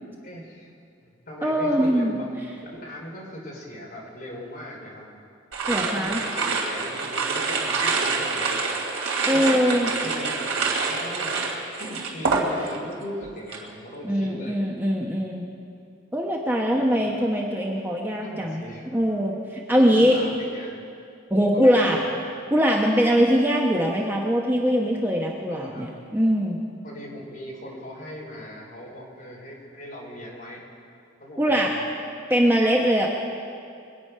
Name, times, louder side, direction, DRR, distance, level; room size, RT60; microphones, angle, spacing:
voice 1, 0.2-0.7 1.0-2.4 2.7-5.1 5.7-8.7 9.3-11.4 11.8-14.6 16.8-17.2 18.2-18.9 19.8-20.7 21.4-22.1 25.5-25.9 26.8-30.6 31.2-31.9, equal, 45° left, -3 dB, 3.8 m, -39 dB
voice 2, 1.4-2.2 5.7-6.2 9.2-9.9 14.0-15.4 16.1-18.6 18.9-20.2 21.3-22.0 22.5-26.6 31.4-31.7 32.3-33.1, equal, 10° right, -1 dB, 1.0 m, -22 dB
Bingo Spinner, 5.5-12.9 13.2-13.7, right 4 dB, 80° right, 2.6 m, -26 dB
23.5 x 9.1 x 5.6 m, 2.5 s
head